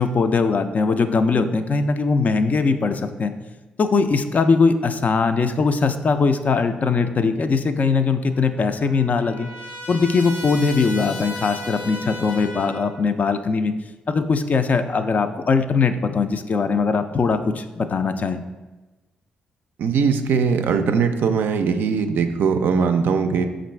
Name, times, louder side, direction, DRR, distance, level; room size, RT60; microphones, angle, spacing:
voice 1, 0.0-3.3 3.8-9.5 9.9-13.7 14.1-18.4, left 4 dB, 45° left, 9 dB, 0.3 m, -20 dB
Trumpet, 8.3-13.0, left 1 dB, 75° left, 1.1 m, -36 dB
voice 2, 19.8-23.5, right 5 dB, 70° right, 7 dB, 0.3 m, -20 dB
5.2 x 2.5 x 3.2 m, 1.2 s
supercardioid pair, 50°, 4 cm